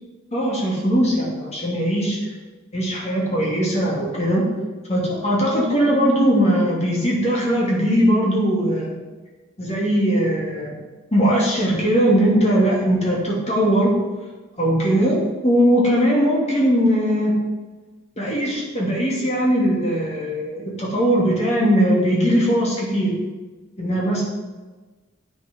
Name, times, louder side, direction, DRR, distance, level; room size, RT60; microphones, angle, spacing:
voice 1, 0.3-2.2 2.7-4.5 4.9-8.9 9.6-10.7 11.1-14.0 14.6-17.4 18.2-23.1 23.8-24.2, equal, 30° left, -4 dB, 2.5 m, -20 dB
9.0 x 6.5 x 5.1 m, 1.3 s
head